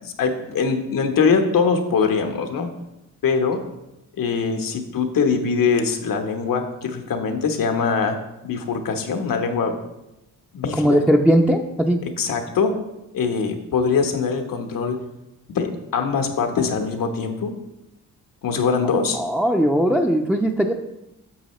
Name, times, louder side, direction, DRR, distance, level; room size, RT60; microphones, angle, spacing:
voice 1, 0.0-2.7 3.2-3.6 4.2-8.2 8.4-9.8 10.5-11.0 12.2-12.7 13.1-15.0 15.5-17.5 18.4-19.2, left 5 dB, 75° left, 5 dB, 1.2 m, -22 dB
voice 2, 10.7-12.0 19.1-20.8, equal, 5° right, 1 dB, 0.7 m, -19 dB
8.9 x 6.3 x 3.2 m, 0.92 s
supercardioid pair, 55°, 34 cm